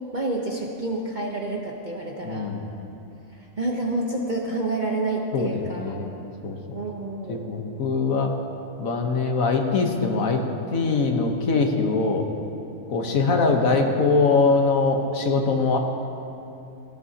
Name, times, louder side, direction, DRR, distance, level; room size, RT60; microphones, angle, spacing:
voice 1, 0.0-2.5 3.3-5.9 6.7-7.6 13.0-13.3, right 2 dB, 40° right, -1 dB, 0.8 m, -29 dB
voice 2, 2.2-2.7 5.3-6.1 6.4-6.8 7.3-8.3 8.8-10.4 10.7-12.3 12.9-15.8, left 4 dB, 60° left, 3 dB, 1.4 m, -22 dB
17.0 x 15.0 x 2.8 m, 2.8 s
omnidirectional pair, 1.7 m